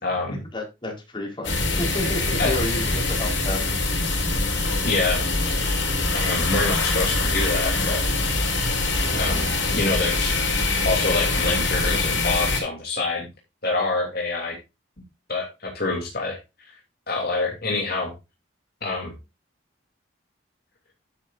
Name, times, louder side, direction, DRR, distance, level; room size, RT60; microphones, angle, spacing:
voice 1, 0.0-0.4 2.4-2.5 4.8-5.2 6.1-8.0 9.1-10.4 10.8-13.3 13.6-14.6 15.3-16.4 17.1-18.1 18.8-19.2, left 3 dB, 55° left, 0 dB, 3.0 m, -26 dB
voice 2, 0.5-3.7, left 1 dB, 25° left, 1 dB, 4.3 m, -31 dB
sound 1, 1.4-12.6, left 3 dB, 75° left, 4.7 m, -24 dB
11.5 x 8.9 x 2.6 m, 0.25 s
head